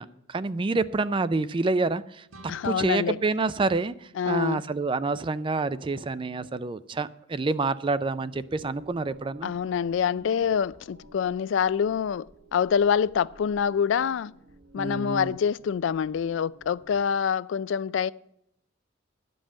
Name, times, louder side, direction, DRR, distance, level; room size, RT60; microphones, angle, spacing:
voice 1, 0.0-9.5 14.7-15.3, right 3 dB, 25° right, 0.3 m, -28 dB
sound 1, 2.3-5.1, right 2 dB, 80° right, 1.0 m, -54 dB
voice 2, 2.5-3.2 4.2-4.6 9.4-12.3 12.5-14.3 14.7-18.1, left 7 dB, 65° left, 0.3 m, -26 dB
sound 2, 8.4-17.1, right 1 dB, 60° right, 1.4 m, -53 dB
11.5 x 5.4 x 8.6 m
head